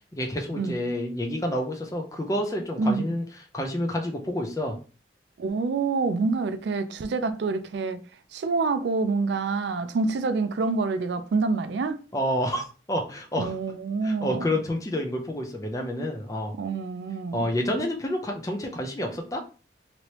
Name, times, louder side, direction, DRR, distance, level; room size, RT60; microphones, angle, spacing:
voice 1, 0.1-3.2 3.5-4.8 12.1-13.5 14.0-16.5 17.3-19.4, left 1 dB, 20° left, 0.5 m, -29 dB
voice 2, 2.8-3.1 5.4-8.0 8.3-12.0 13.3-14.5 16.6-17.5, right 4 dB, 75° right, 0.3 m, -27 dB
3.0 x 2.9 x 2.9 m
head